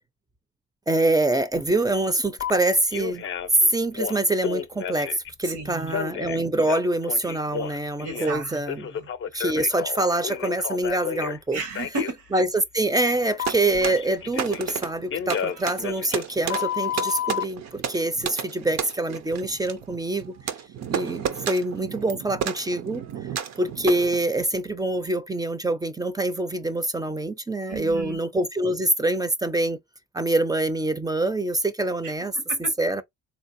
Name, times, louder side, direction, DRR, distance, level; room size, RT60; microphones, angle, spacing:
voice 1, 0.9-3.2 3.6-8.9 9.3-11.6 12.3-20.4 20.9-23.0 23.6-29.8 30.1-32.4 32.8-33.0, right 2 dB, 15° right, 0.5 m, -25 dB
Telephone, 2.4-2.5 2.9-3.6 3.9-5.3 5.9-8.4 8.7-11.4 11.7-12.1 13.4-14.8 15.1-17.4, left 8 dB, 45° left, 0.5 m, -31 dB
voice 2, 5.4-5.9 8.0-8.6 8.9-9.1 11.5-12.4 27.7-28.2 32.0-32.7, right 3 dB, 80° right, 1.6 m, -33 dB
sound 1, 13.1-24.2, right 8 dB, 60° right, 0.7 m, -33 dB
3.9 x 2.8 x 2.5 m
cardioid pair, 90°, 30 cm